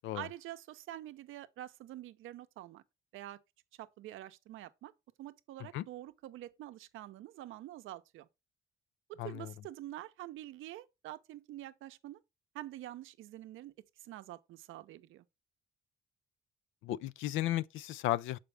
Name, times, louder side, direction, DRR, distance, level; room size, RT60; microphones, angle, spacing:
voice 1, 0.1-2.8 3.1-3.4 3.7-4.9 5.2-8.3 9.1-12.2 12.5-15.2, right 14 dB, 85° right, 0.6 m, -47 dB
voice 2, 9.2-9.5 16.8-18.4, left 14 dB, 85° left, 0.4 m, -34 dB
6.9 x 5.0 x 3.3 m
cardioid pair, 90°, 20 cm